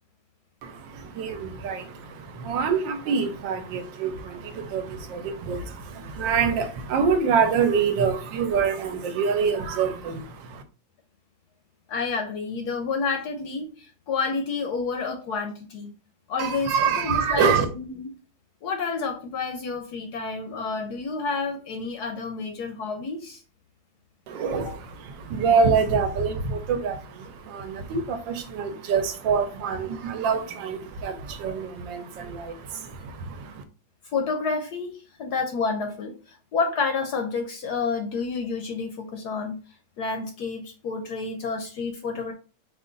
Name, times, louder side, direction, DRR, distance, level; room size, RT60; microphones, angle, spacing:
voice 1, 0.6-10.6 16.4-17.7 24.3-33.6, right 6 dB, 75° right, 1.3 m, -26 dB
voice 2, 11.9-15.9 16.3-18.1 18.6-23.4 34.0-39.6 40.0-42.3, left 4 dB, 70° left, 1.0 m, -29 dB
5.1 x 2.5 x 3.8 m
omnidirectional pair, 2.2 m